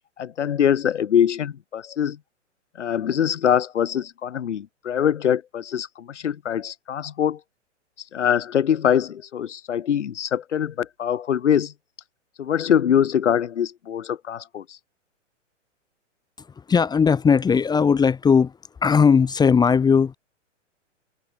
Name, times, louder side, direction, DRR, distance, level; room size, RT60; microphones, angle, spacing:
voice 1, 0.2-2.2 2.8-7.4 8.0-11.7 12.4-14.8, left 9 dB, 70° left, 4.4 m, -23 dB
voice 2, 16.6-18.5 18.8-20.2, left 6 dB, 10° left, 1.2 m, -18 dB
open air
hypercardioid pair, 115°, 37 cm